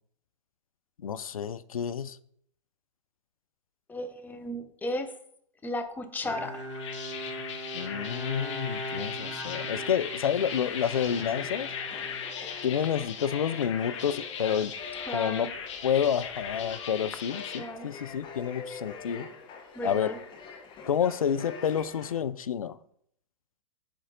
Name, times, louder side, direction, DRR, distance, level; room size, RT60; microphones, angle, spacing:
voice 1, 1.0-2.2 7.7-11.7 12.6-14.7 15.1-15.5 15.8-19.3 19.8-20.2 20.9-22.8, left 8 dB, 80° left, 0.4 m, -29 dB
voice 2, 3.9-5.1 5.6-6.5 15.1-15.5 17.6-17.9 19.8-20.2, left 1 dB, 10° left, 0.7 m, -34 dB
Bowed string instrument, 6.2-12.9, equal, 20° right, 2.1 m, -40 dB
sound 1, 6.5-17.6, left 7 dB, 60° left, 1.0 m, -38 dB
sound 2, 10.3-22.2, left 5 dB, 30° left, 1.0 m, -44 dB
8.1 x 3.1 x 3.7 m
figure-of-eight pair, 105°, 18 cm